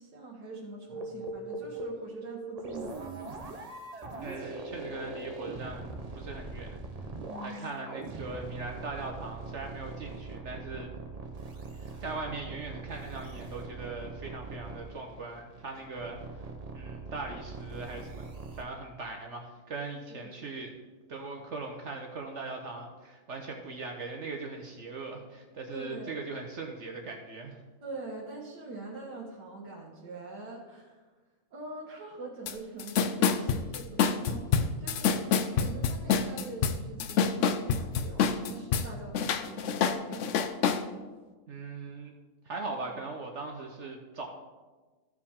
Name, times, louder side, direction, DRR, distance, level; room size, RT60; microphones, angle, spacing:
voice 1, 0.0-3.1 7.3-7.7 20.1-20.3 25.7-26.1 27.8-30.9 31.5-40.2, right 2 dB, 85° right, -5 dB, 1.9 m, -43 dB
sound 1, 0.9-18.6, right 3 dB, 35° right, 0.6 m, -41 dB
voice 2, 4.2-7.1 7.4-10.9 11.7-16.4 16.7-18.3 18.5-20.7 21.1-27.6 41.5-42.1 42.4-44.2, right 3 dB, 55° right, 2 dB, 1.0 m, -40 dB
sound 2, 32.5-32.6 32.8-38.9 39.1-40.8, left 6 dB, 70° left, 0.7 m, -26 dB
14.0 x 4.9 x 3.6 m, 1.3 s
omnidirectional pair, 1.8 m